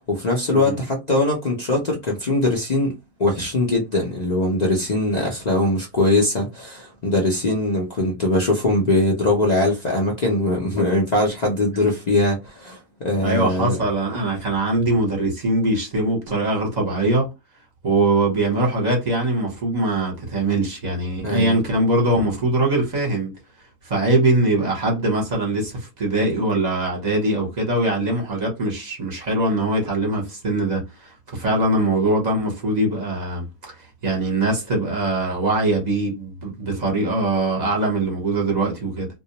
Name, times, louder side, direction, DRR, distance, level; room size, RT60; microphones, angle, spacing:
voice 1, 0.0-2.9 3.2-13.8 21.2-21.5, left 2 dB, 55° left, 0.4 m, -21 dB
voice 2, 13.2-17.3 17.8-23.3 23.8-33.8 34.0-39.1, right 2 dB, 35° right, 0.9 m, -22 dB
2.3 x 2.2 x 2.8 m
omnidirectional pair, 1.6 m